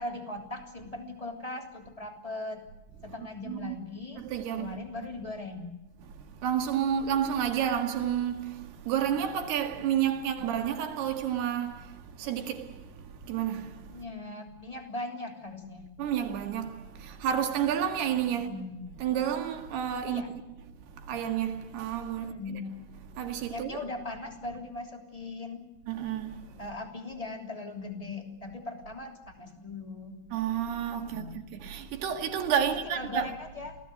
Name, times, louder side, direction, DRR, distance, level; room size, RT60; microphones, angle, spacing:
voice 1, 0.0-2.6 3.0-4.2 4.5-5.7 10.4-10.5 13.9-15.9 18.3-18.9 20.1-20.3 22.2-22.7 23.5-25.6 26.6-30.2 31.0-31.4 32.6-33.8, left 2 dB, 10° left, 2.7 m, -39 dB
voice 2, 3.5-3.8 4.2-4.7 6.4-11.8 12.2-12.7 13.3-13.7 16.0-18.6 19.0-20.2 21.1-22.6 23.2-23.8 25.9-26.4 30.3-33.3, right 9 dB, 80° right, 4.0 m, -30 dB
28.5 x 18.5 x 7.9 m
omnidirectional pair, 4.5 m